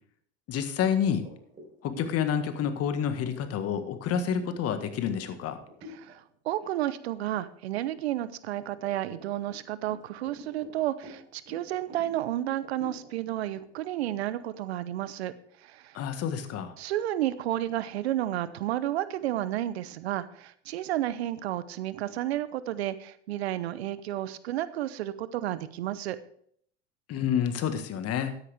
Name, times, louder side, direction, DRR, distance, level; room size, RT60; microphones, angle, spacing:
voice 1, 0.5-1.3 1.8-5.6 15.9-16.7 27.1-28.4, left 8 dB, 50° left, 9 dB, 1.6 m, -29 dB
sound 1, 1.2-6.2 6.6-6.9 7.3-8.1 8.7-15.4, left 1 dB, 25° right, 3.9 m, -50 dB
voice 2, 5.9-15.3 15.6-16.0 16.8-26.2, right 13 dB, 80° right, 15 dB, 0.8 m, -31 dB
13.0 x 9.9 x 3.5 m, 0.63 s
hypercardioid pair, 75°, 31 cm